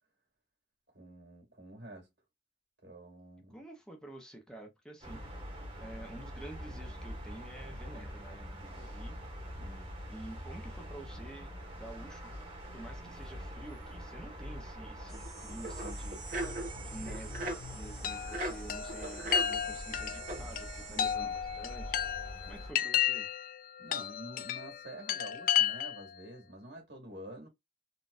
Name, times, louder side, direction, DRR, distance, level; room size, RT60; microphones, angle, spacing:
voice 1, 0.9-2.1 2.8-3.6 9.6-9.9 20.9-21.4 23.8-27.5, right 1 dB, 75° right, 1.9 m, -48 dB
voice 2, 3.5-5.2 5.8-9.2 10.1-12.3 12.7-16.2 16.8-22.0 22.5-23.3, right 1 dB, 5° left, 0.7 m, -49 dB
sound 1, 5.0-22.7, equal, 30° right, 1.5 m, -44 dB
sound 2, 15.1-21.1, right 2 dB, 50° right, 1.2 m, -41 dB
Chime, 18.0-26.2, left 10 dB, 50° left, 0.3 m, -33 dB
4.0 x 2.4 x 2.5 m
head